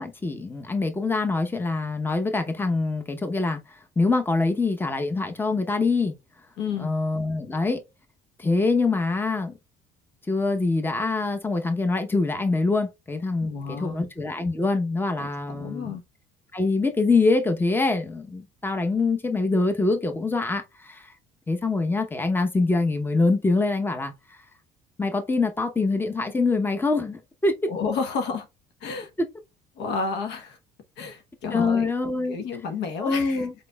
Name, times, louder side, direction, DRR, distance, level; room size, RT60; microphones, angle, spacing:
voice 1, 0.0-3.6 4.0-6.1 6.8-7.8 8.4-9.5 10.3-16.0 16.5-21.1 21.5-24.1 25.0-27.5 31.5-32.4 33.0-33.5, left 3 dB, 10° left, 0.8 m, -24 dB
voice 2, 6.6-6.9 13.4-14.1 15.2-16.0 27.7-28.5 28.8-29.1 29.8-30.6 31.0-31.9 32.3-33.5, left 5 dB, 75° left, 1.0 m, -31 dB
5.0 x 4.2 x 2.3 m
supercardioid pair, 85°, 18 cm